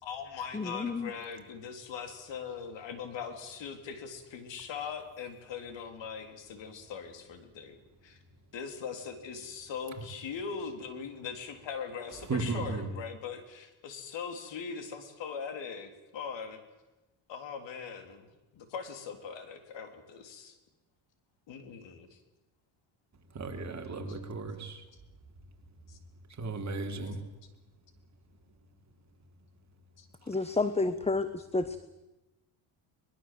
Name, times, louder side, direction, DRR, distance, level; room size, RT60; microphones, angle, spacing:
voice 1, 0.0-7.8 8.0-8.2 8.5-16.6 17.3-18.3 18.5-20.6 21.5-22.2 24.1-24.2 25.9-26.0 30.0-30.3, left 6 dB, 65° left, 8 dB, 3.7 m, -41 dB
voice 2, 0.5-1.1 30.3-31.3 31.5-31.8, left 3 dB, 15° left, 13 dB, 1.0 m, -29 dB
voice 3, 12.3-12.9 23.3-24.8 26.4-27.2, right 3 dB, 35° right, 3 dB, 3.6 m, -35 dB
23.0 x 21.5 x 7.7 m, 1.0 s
cardioid pair, 105°, 47 cm